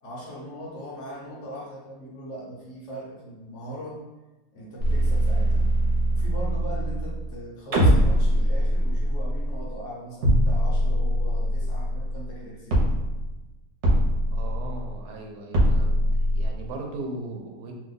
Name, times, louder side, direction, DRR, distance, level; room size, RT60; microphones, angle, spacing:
voice 1, 0.0-4.0 4.5-5.7 6.1-12.8, equal, 60° left, -4 dB, 0.9 m, -39 dB
sound 1, 4.8-7.4 7.7-9.8 10.2-12.4 12.7-13.4 13.8-15.1 15.5-16.5, equal, 55° right, 1.0 m, -22 dB
voice 2, 14.3-16.0 16.3-17.7, right 2 dB, 80° right, 1 dB, 1.1 m, -37 dB
2.7 x 2.2 x 3.8 m, 1.1 s
omnidirectional pair, 1.6 m